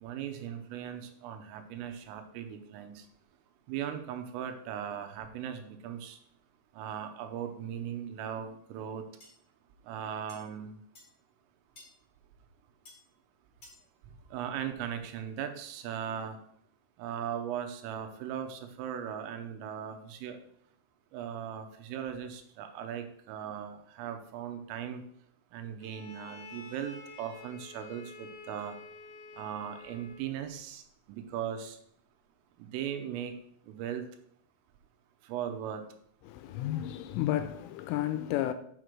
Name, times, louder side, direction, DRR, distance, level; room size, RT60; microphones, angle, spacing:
voice 1, 0.0-3.1 3.7-6.2 6.7-9.0 9.9-10.8 14.3-16.4 17.0-20.4 21.1-25.0 25.5-28.8 29.4-30.8 31.1-31.8 32.6-33.3 33.7-34.0 35.2-35.8, right 9 dB, 80° right, 3.4 m, -38 dB
Sword Fight, 9.2-9.3 10.3-10.4 10.9-11.1 11.8-11.9 12.9-13.0 13.6-13.8, left 2 dB, 35° left, 1.3 m, -52 dB
Bowed string instrument, 25.8-30.4, left 3 dB, 65° left, 2.2 m, -49 dB
voice 2, 36.2-38.5, left 13 dB, 85° left, 3.0 m, -32 dB
6.9 x 6.7 x 6.1 m
omnidirectional pair, 5.9 m